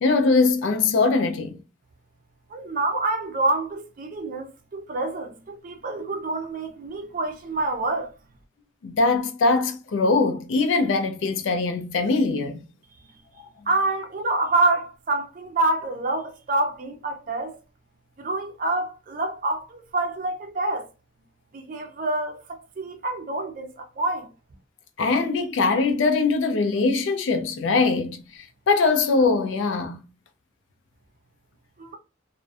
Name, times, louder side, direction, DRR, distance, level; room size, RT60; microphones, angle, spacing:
voice 1, 0.0-1.6 8.8-12.7 25.0-30.0, left 3 dB, 80° left, 0.4 m, -22 dB
voice 2, 2.5-8.1 13.7-17.6 18.2-20.9 21.5-24.3 31.8-31.9, right 2 dB, 45° right, 0.4 m, -27 dB
2.5 x 2.1 x 2.3 m
head